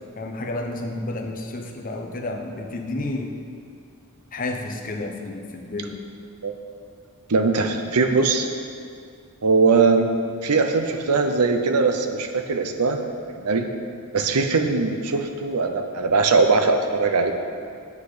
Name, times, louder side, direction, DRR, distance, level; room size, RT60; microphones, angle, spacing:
voice 1, 0.2-3.3 4.3-6.0, left 2 dB, 40° left, 2 dB, 0.9 m, -31 dB
voice 2, 7.3-8.5 9.4-10.1 10.4-13.0 13.3-13.7 14.1-17.3, right 4 dB, 85° right, 6 dB, 0.7 m, -20 dB
8.5 x 8.2 x 5.0 m, 2.3 s
head